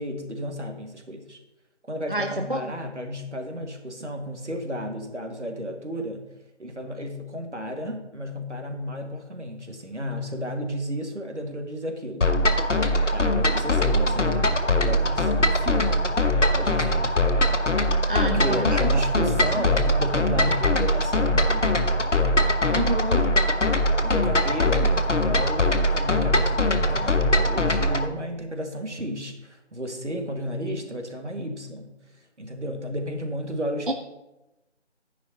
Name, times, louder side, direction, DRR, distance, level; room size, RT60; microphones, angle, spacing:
voice 1, 0.0-1.4 1.9-6.2 6.6-12.3 13.1-14.4 14.8-16.1 16.5-17.2 18.2-21.7 23.9-31.9 32.4-33.9, equal, 75° right, 4 dB, 2.0 m, -33 dB
voice 2, 2.1-2.7 18.1-19.3 19.5-19.7 22.7-23.3 33.9-34.0, right 1 dB, 50° right, 5 dB, 0.5 m, -28 dB
sound 1, 12.2-28.1, left 1 dB, 85° left, 1.1 m, -22 dB
11.0 x 10.0 x 2.9 m, 0.98 s
figure-of-eight pair, 170°, 35 cm